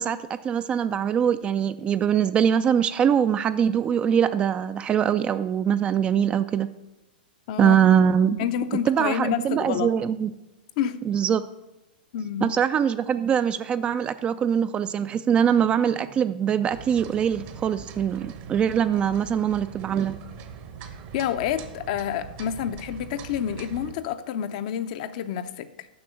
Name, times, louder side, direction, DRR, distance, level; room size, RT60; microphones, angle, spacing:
voice 1, 0.0-6.7 7.6-8.4 8.9-10.3 11.1-11.4 12.4-20.2, right 8 dB, 20° right, 12 dB, 0.3 m, -23 dB
voice 2, 8.4-9.9 10.8-11.0 12.1-12.5 21.1-25.9, left 9 dB, 45° left, 11 dB, 0.6 m, -28 dB
sound 1, 16.7-23.9, right 7 dB, 40° right, 0.9 m, -42 dB
7.0 x 6.0 x 6.5 m, 1.0 s
figure-of-eight pair, 105°, 5 cm